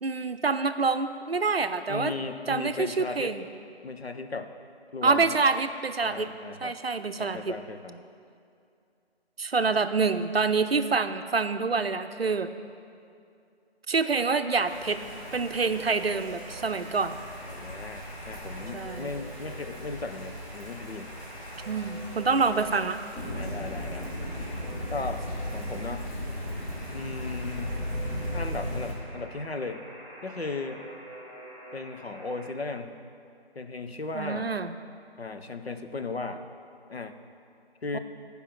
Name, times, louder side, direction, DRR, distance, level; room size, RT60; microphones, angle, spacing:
voice 1, 0.0-2.1 2.5-3.4 5.0-6.3 6.6-7.5 9.4-12.5 13.9-15.0 15.3-17.2 18.7-19.1 21.7-23.0 34.1-34.7 37.9-38.0, right 4 dB, 65° right, 9 dB, 0.6 m, -26 dB
voice 2, 1.9-3.4 3.8-4.5 4.9-5.4 6.0-6.8 7.2-8.1 17.4-21.1 22.1-22.3 23.3-24.1 24.9-25.2 25.5-26.1 26.9-27.7 28.3-29.8 30.2-30.8 31.7-33.0 33.5-34.5 35.2-36.5 36.9-37.2 37.8-38.0, left 3 dB, 70° left, 7 dB, 0.8 m, -36 dB
Alarm, 14.3-32.5, right 1 dB, 15° left, 2.7 m, -46 dB
sound 1, 14.6-28.9, equal, 30° left, 2.1 m, -37 dB
12.0 x 5.3 x 6.1 m, 2.5 s
figure-of-eight pair, 165°, 32 cm